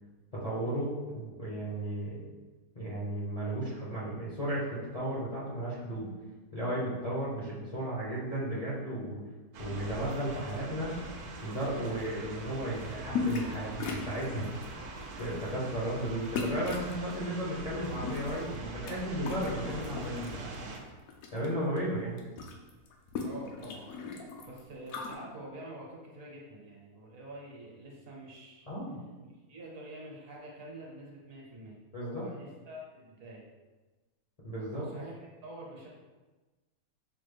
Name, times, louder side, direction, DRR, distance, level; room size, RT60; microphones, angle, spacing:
voice 1, 0.3-2.2 2.8-6.1 6.5-9.2 9.6-11.0 11.4-14.5 15.2-20.8 21.3-22.2 28.7-29.0 31.9-32.2 34.4-34.8, right 1 dB, 35° left, -8 dB, 0.6 m, -34 dB
sound 1, 9.5-20.8, right 2 dB, 80° right, 1.1 m, -43 dB
sound 2, 13.1-13.5 13.8-14.7 15.2-15.4 16.3-16.9 17.8-18.9 19.2-20.3 20.7-21.5 21.8-21.9 22.1-25.1, left 5 dB, 75° left, 1.0 m, -36 dB
voice 2, 23.2-23.9 24.4-28.7 29.2-33.4 34.7-35.9, right 1 dB, 65° right, -3 dB, 1.2 m, -46 dB
5.3 x 2.1 x 3.3 m, 1.2 s
omnidirectional pair, 1.6 m